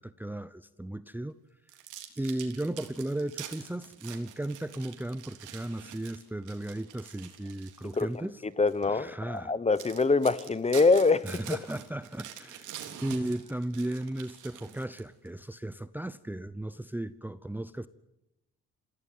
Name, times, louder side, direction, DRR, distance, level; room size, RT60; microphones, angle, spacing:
voice 1, 0.0-1.4 2.2-8.4 8.8-9.5 11.2-12.7 13.0-17.9, right 1 dB, 5° right, 0.8 m, -35 dB
sound 1, 1.7-8.1 8.7-8.8 9.4-9.5 9.8-15.3, right 10 dB, 85° right, 3.5 m, -46 dB
voice 2, 8.6-11.3, left 3 dB, 20° left, 1.1 m, -24 dB
27.0 x 16.5 x 9.4 m
cardioid pair, 90°, 30 cm